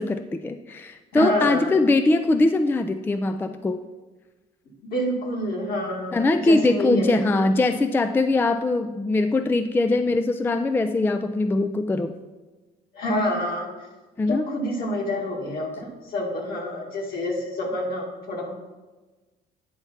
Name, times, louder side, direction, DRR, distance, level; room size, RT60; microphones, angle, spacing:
voice 1, 0.0-3.8 6.1-12.1 14.2-14.4, left 2 dB, 10° left, 9 dB, 0.3 m, -22 dB
voice 2, 1.1-1.7 4.8-7.4 12.9-13.7 14.3-18.5, left 1 dB, 60° left, -1 dB, 2.1 m, -27 dB
9.3 x 3.4 x 5.7 m, 1.2 s
cardioid pair, 110°, 17 cm